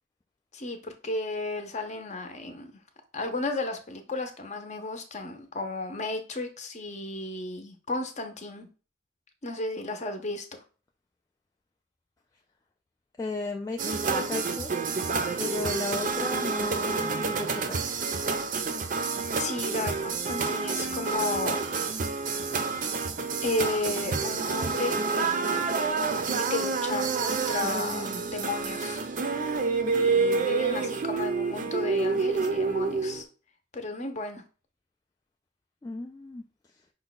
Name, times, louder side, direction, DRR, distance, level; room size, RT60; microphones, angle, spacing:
voice 1, 0.5-2.7 3.1-8.7 9.4-10.5 19.4-21.6 23.4-25.7 26.3-29.0 29.9-33.2 33.7-34.4, left 2 dB, 40° left, 6 dB, 0.7 m, -33 dB
voice 2, 13.2-14.7 15.4-17.9 35.8-36.4, left 3 dB, 20° left, 1 dB, 0.3 m, -35 dB
sound 1, 13.8-33.2, right 4 dB, 45° right, 0.5 m, -28 dB
5.4 x 2.2 x 3.9 m, 0.36 s
head